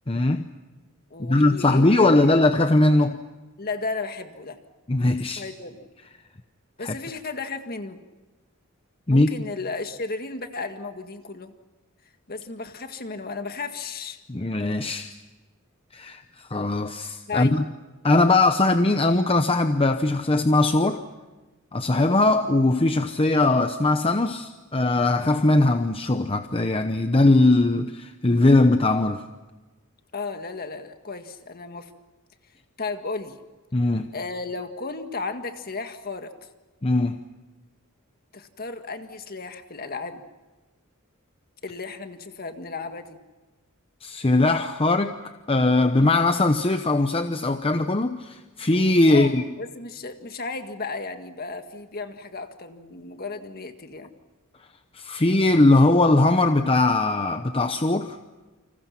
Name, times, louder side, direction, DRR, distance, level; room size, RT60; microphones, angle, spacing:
voice 1, 0.1-0.5 1.2-3.2 4.9-5.5 6.8-6.9 9.1-9.3 14.3-15.1 15.9-17.6 18.0-21.0 21.7-29.2 33.7-34.1 36.8-37.2 44.0-45.2 45.5-49.4 54.9-58.2, left 2 dB, 25° left, 0.8 m, -20 dB
voice 2, 1.1-1.9 2.2-2.4 3.6-4.6 5.3-5.9 6.8-8.0 9.1-11.5 12.3-14.2 17.3-17.6 30.1-31.9 32.8-33.4 34.1-36.5 38.3-40.2 41.6-43.2 46.0-46.1 49.1-54.1, left 3 dB, 45° left, 1.8 m, -34 dB
29.5 x 27.0 x 5.9 m
head